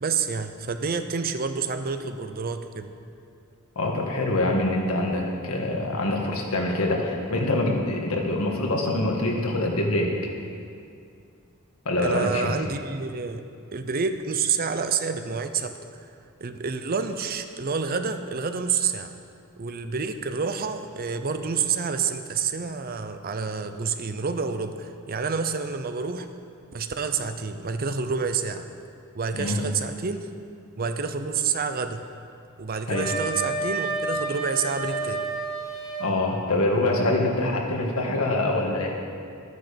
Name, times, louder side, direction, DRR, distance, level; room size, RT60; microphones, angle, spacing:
voice 1, 0.0-2.9 12.0-13.4 13.7-16.1 16.4-19.1 19.6-26.3 26.7-28.7 29.1-30.3 30.8-32.0 32.6-35.3, right 5 dB, 45° right, 9 dB, 0.6 m, -28 dB
voice 2, 3.8-10.2 11.9-12.5 29.3-29.6 32.9-33.1 36.0-39.0, left 2 dB, 80° left, 0 dB, 1.7 m, -25 dB
Wind instrument woodwind instrument, 32.9-36.1, right 3 dB, ahead, 2.5 m, -30 dB
12.5 x 9.4 x 5.2 m, 2.4 s
head